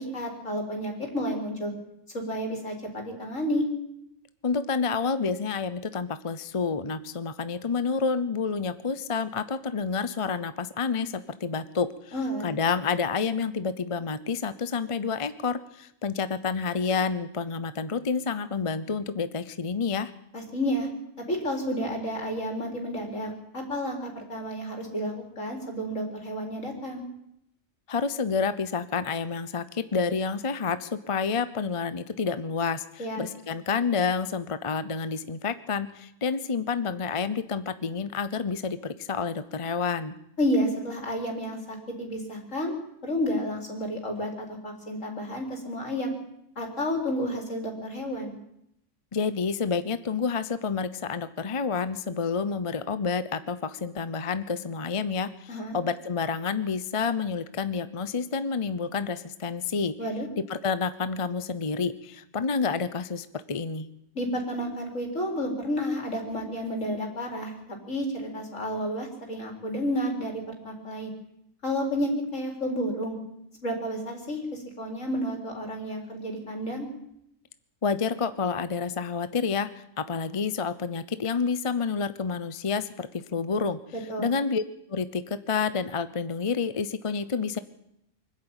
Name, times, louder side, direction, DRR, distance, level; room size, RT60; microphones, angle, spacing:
voice 1, 0.0-1.7 2.1-3.7 12.1-12.5 20.3-20.9 21.3-27.0 33.0-33.2 40.4-42.7 43.0-46.1 46.6-48.3 55.5-55.8 60.0-60.3 64.1-67.5 67.9-71.1 71.6-73.2 73.6-76.9 84.1-84.3, equal, 75° left, 1 dB, 4.6 m, -31 dB
voice 2, 4.4-12.1 12.4-20.1 27.9-40.2 49.1-60.0 60.4-63.9 77.8-79.7 80.0-83.8 84.2-84.6 84.9-87.6, left 5 dB, 30° left, 13 dB, 0.7 m, -29 dB
24.5 x 12.0 x 9.0 m, 0.78 s
omnidirectional pair, 1.3 m